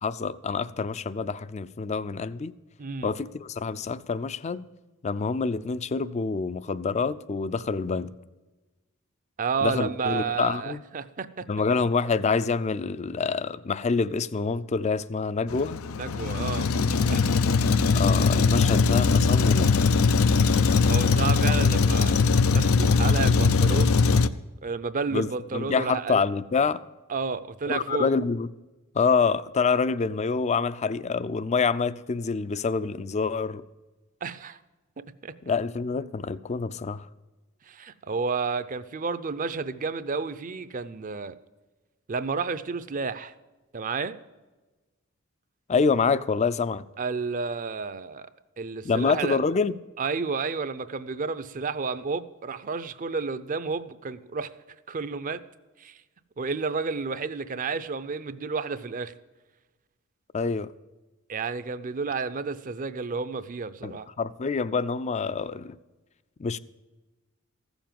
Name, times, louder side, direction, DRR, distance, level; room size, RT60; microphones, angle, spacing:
voice 1, 0.0-2.6 3.0-4.7 5.0-8.1 9.6-10.8 11.5-15.8 17.9-19.8 25.1-26.8 27.7-28.5 28.9-33.6 35.4-37.1 45.7-46.8 48.8-49.8 60.3-60.7 63.8-65.8 66.4-66.6, left 5 dB, 35° left, 0.4 m, -26 dB
voice 2, 2.8-3.1 9.4-11.4 16.0-16.6 17.1-17.2 20.6-22.2 22.5-24.0 24.6-26.2 27.1-28.1 34.2-34.6 35.0-35.3 37.7-41.3 42.1-43.3 43.7-44.2 47.0-48.3 48.6-49.4 50.0-54.5 54.9-55.4 55.8-55.9 56.4-59.1 61.3-64.1, right 5 dB, 40° right, 0.5 m, -31 dB
Truck, 15.5-24.3, left 4 dB, 90° left, 0.5 m, -21 dB
15.0 x 7.1 x 7.5 m
head